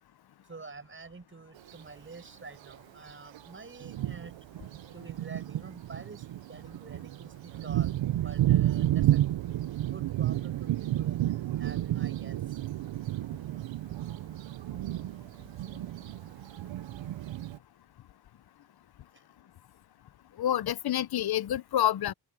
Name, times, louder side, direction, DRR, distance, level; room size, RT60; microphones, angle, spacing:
voice 1, 0.5-4.3 4.9-9.3 9.9-11.2 11.6-12.6, right 4 dB, 25° right, 6.5 m, -48 dB
Thunder, 1.6-1.7 2.7-2.8 3.3-3.4 3.8-17.6, right 13 dB, 70° right, 0.7 m, -31 dB
voice 2, 20.4-22.1, left 11 dB, 55° left, 0.7 m, -28 dB
wide cardioid pair, 145°, 47 cm